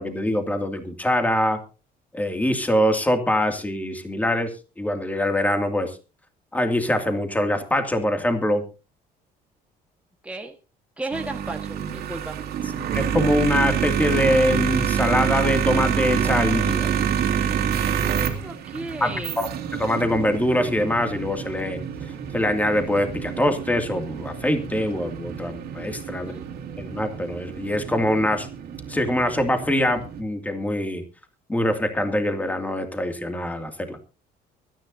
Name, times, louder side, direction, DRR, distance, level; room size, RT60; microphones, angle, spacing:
voice 1, 0.0-1.6 2.1-6.0 6.5-8.6 12.8-16.9 19.0-21.8 22.3-26.3 26.8-28.5 28.9-31.0 31.5-34.0, left 1 dB, 10° left, 6 dB, 2.4 m, -23 dB
voice 2, 10.2-10.6 11.0-12.4 17.8-19.4 26.1-26.5, right 2 dB, 5° right, 3 dB, 1.5 m, -35 dB
sound 1, 11.1-30.2, right 8 dB, 70° right, 2.9 m, -27 dB
23.5 x 10.0 x 2.7 m, 0.32 s
cardioid pair, 110°, 17 cm